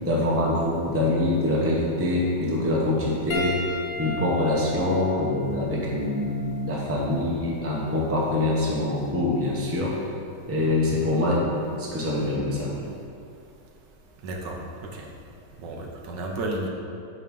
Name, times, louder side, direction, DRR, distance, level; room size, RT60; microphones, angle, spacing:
voice 1, 0.0-3.6 4.0-9.9 10.5-11.4 11.8-12.9, left 1 dB, 10° right, -4 dB, 0.7 m, -24 dB
Piano, 3.3-8.0 8.9-9.1 11.0-11.1, left 2 dB, 80° left, 1.4 m, -36 dB
voice 2, 14.2-15.0 15.6-16.7, right 2 dB, 80° right, 0 dB, 1.5 m, -32 dB
8.6 x 3.2 x 5.2 m, 2.5 s
omnidirectional pair, 1.9 m